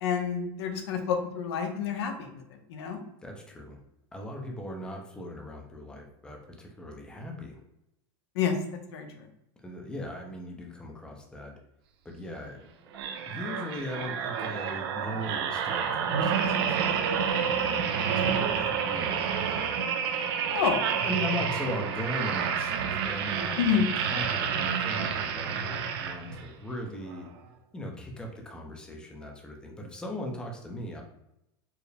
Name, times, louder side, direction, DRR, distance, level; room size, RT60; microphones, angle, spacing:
voice 1, 0.0-3.0 8.3-8.6 8.9-9.3 20.5-20.9 23.6-23.9, left 7 dB, 75° left, 5 dB, 0.7 m, -29 dB
voice 2, 3.2-3.8 4.1-7.6 9.6-11.6 12.0-12.6 13.3-19.8 20.9-27.3 27.7-31.0, left 1 dB, 5° left, 1 dB, 0.6 m, -39 dB
sound 1, 12.9-26.5 27.1-27.3, right 7 dB, 65° right, 0.5 m, -29 dB
4.7 x 2.1 x 3.3 m, 0.82 s
supercardioid pair, 135°, 14 cm